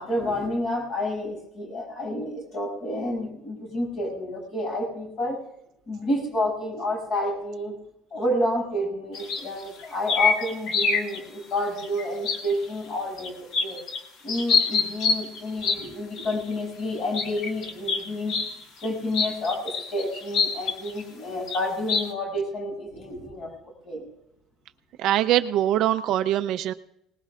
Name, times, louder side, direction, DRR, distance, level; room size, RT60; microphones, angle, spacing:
voice 1, 0.0-5.4 5.9-7.8 8.1-13.9 14.2-18.5 18.8-24.1, left 1 dB, 35° left, -2 dB, 7.7 m, -29 dB
sound 1, 9.1-11.2 11.6-12.6 13.2-14.0 14.3-15.9 16.2-16.3 17.1-18.5 18.8-18.9 19.1-21.0 21.5-21.6 21.9-22.0, left 5 dB, 55° left, 2.2 m, -25 dB
voice 2, 25.0-26.7, right 12 dB, 55° right, 9 dB, 0.6 m, -23 dB
25.0 x 19.5 x 2.5 m, 0.79 s
cardioid pair, 170°, 0 cm